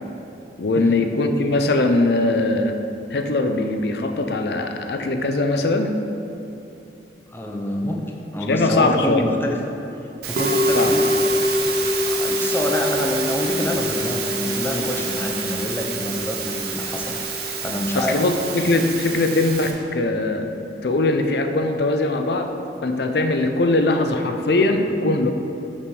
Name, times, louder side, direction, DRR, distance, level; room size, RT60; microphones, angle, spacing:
voice 1, 0.6-2.8 3.1-6.0 8.5-9.3 10.7-11.0 17.9-20.5 20.8-22.5 22.8-25.3, left 2 dB, 65° left, 6 dB, 0.5 m, -21 dB
voice 2, 7.3-8.0 8.3-9.6 10.2-11.3 11.6-11.7 12.1-17.2 17.6-18.2, left 1 dB, 10° left, 1 dB, 0.6 m, -27 dB
Musical instrument, 10.2-19.7, right 1 dB, 60° right, 0.8 m, -24 dB
6.1 x 6.1 x 4.8 m, 2.9 s
head